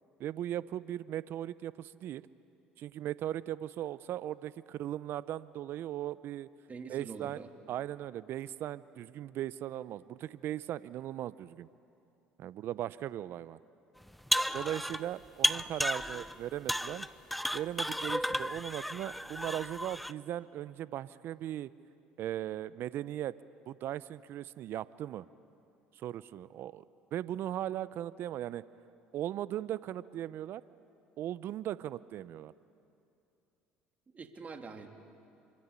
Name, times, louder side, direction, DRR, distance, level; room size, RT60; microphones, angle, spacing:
voice 1, 0.2-2.2 2.8-6.5 6.9-7.4 7.7-11.7 12.4-13.6 14.5-17.1 17.5-21.7 22.2-23.3 23.7-25.3 26.0-26.8 27.1-28.6 29.1-30.6 31.2-32.5, right 12 dB, 60° right, 18 dB, 0.6 m, -38 dB
voice 2, 6.7-7.5 34.1-34.9, right 4 dB, 35° right, 5 dB, 3.0 m, -45 dB
sound 1, 14.1-15.1 15.4-16.4 16.7-20.1, equal, ahead, 0.7 m, -33 dB
26.5 x 24.0 x 8.3 m, 2.7 s
hypercardioid pair, 70°, 4 cm